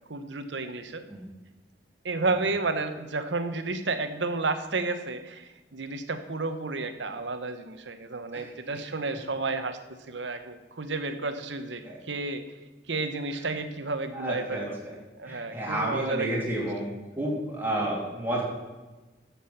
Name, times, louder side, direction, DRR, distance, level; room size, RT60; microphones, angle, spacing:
voice 1, 0.1-1.0 2.0-9.8 10.1-12.4 12.9-14.8 15.2-16.3, right 3 dB, 75° right, 9 dB, 1.0 m, -31 dB
voice 2, 8.3-8.8 11.8-12.0 13.3-13.4 14.1-14.9 15.2-16.9 17.1-18.4, right 1 dB, 10° right, -4 dB, 3.0 m, -31 dB
10.0 x 7.3 x 7.2 m, 1.2 s
head